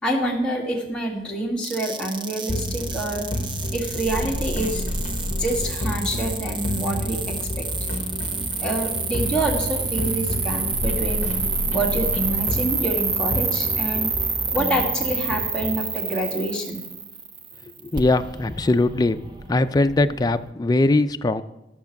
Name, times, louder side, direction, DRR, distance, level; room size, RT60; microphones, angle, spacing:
voice 1, 0.0-3.3 3.7-4.8 5.4-7.7 8.6-11.3 11.7-14.1 14.5-16.8, right 1 dB, 5° left, -3 dB, 2.0 m, -27 dB
sound 1, 1.6-20.5, right 5 dB, 25° right, 0.7 m, -29 dB
sound 2, 2.5-15.8, left 1 dB, 40° left, 1.1 m, -30 dB
voice 2, 17.8-19.2 19.5-21.4, left 2 dB, 20° left, 9 dB, 0.4 m, -20 dB
13.0 x 6.6 x 5.8 m, 0.98 s
head